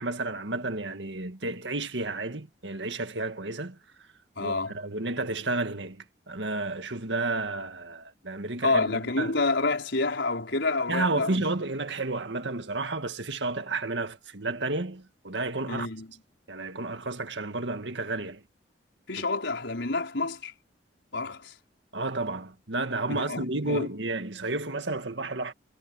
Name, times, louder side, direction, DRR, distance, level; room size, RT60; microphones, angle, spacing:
voice 1, 0.0-3.8 4.4-9.4 10.9-15.9 16.5-18.4 21.9-25.5, right 2 dB, 75° right, 1.9 m, -31 dB
voice 2, 4.4-4.8 8.6-11.3 15.7-16.1 19.1-20.5 21.1-21.5 23.1-23.9, left 3 dB, 80° left, 4.5 m, -28 dB
head